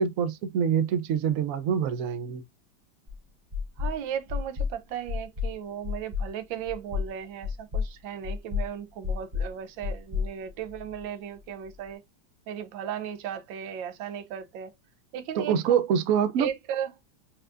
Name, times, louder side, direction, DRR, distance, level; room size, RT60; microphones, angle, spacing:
voice 1, 0.0-2.4 15.4-16.5, right 7 dB, 70° right, 0.8 m, -25 dB
sound 1, 3.1-3.2 3.5-3.9 4.3-4.7 5.1-5.5 5.8-6.3 6.7-7.1 7.4-7.9 8.2-8.7 9.0-9.5 9.8-11.0, left 6 dB, 40° right, 2.1 m, -30 dB
voice 2, 3.8-12.0 12.5-14.7 15.1-15.8 16.4-16.9, right 9 dB, 85° right, 1.5 m, -36 dB
4.3 x 4.0 x 2.5 m
omnidirectional pair, 2.0 m